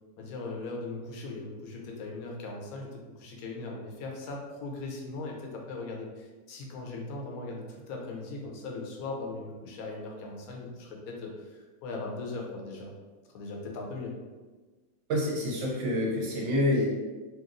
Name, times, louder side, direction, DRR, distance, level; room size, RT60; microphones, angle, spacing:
voice 1, 0.2-12.9 13.3-14.1, left 3 dB, 70° left, 0 dB, 1.0 m, -39 dB
voice 2, 15.1-16.9, left 1 dB, 60° right, -3 dB, 0.8 m, -27 dB
2.9 x 2.7 x 2.5 m, 1.3 s
omnidirectional pair, 1.6 m